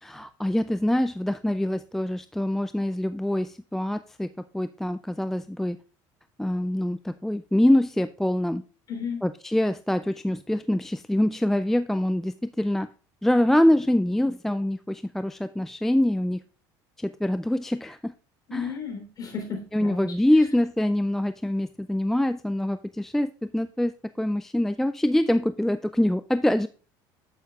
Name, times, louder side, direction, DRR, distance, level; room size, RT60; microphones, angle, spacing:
voice 1, 0.0-4.3 4.5-5.8 6.4-8.6 9.2-12.9 13.2-16.4 17.0-18.1 18.5-18.7 19.7-23.9 24.2-26.7, left 1 dB, 5° left, 11 dB, 0.3 m, -24 dB
voice 2, 8.9-9.2 18.5-20.1, left 6 dB, 40° left, 3 dB, 3.4 m, -33 dB
9.1 x 8.1 x 2.4 m, 0.37 s
supercardioid pair, 95°, 10 cm